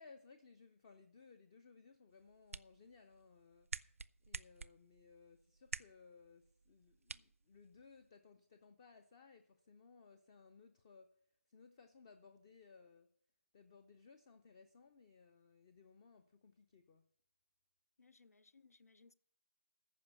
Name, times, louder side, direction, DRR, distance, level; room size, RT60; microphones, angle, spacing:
voice 1, 0.0-3.7 4.3-11.2 11.5-13.1 13.5-17.1, left 4 dB, 20° left, 0.5 m, -62 dB
sound 1, 2.1-8.1, right 4 dB, 65° right, 0.4 m, -51 dB
voice 2, 18.0-19.1, left 4 dB, 85° left, 0.4 m, -66 dB
14.5 x 5.5 x 8.1 m
figure-of-eight pair, 160°, 8 cm